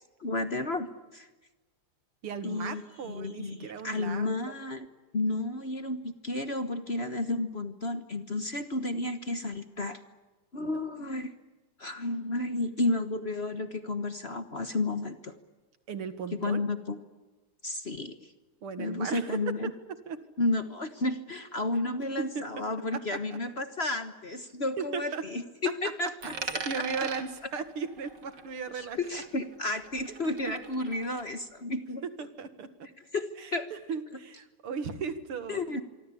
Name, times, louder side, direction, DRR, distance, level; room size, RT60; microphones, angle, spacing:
voice 1, 0.2-1.3 2.4-4.9 5.1-10.0 10.5-11.3 11.8-15.3 16.3-17.0 17.6-18.3 18.8-19.7 20.4-26.3 26.8-27.1 28.8-32.0 33.1-33.7 35.5-35.8, left 2 dB, 35° left, 8 dB, 1.3 m, -32 dB
voice 2, 2.2-4.6 10.5-10.8 15.9-16.6 18.6-19.7 20.1-20.2 22.2-22.4 23.1-23.2 24.8-25.2 25.8-25.9 26.2-29.2 29.6-29.7 30.3-30.4 32.2-32.9 33.4-35.6, right 6 dB, 85° right, 10 dB, 2.7 m, -37 dB
Coin (dropping), 26.2-29.0 29.2-31.2, right 4 dB, 55° right, 3.0 m, -40 dB
26.0 x 24.5 x 8.5 m, 1.2 s
omnidirectional pair, 2.3 m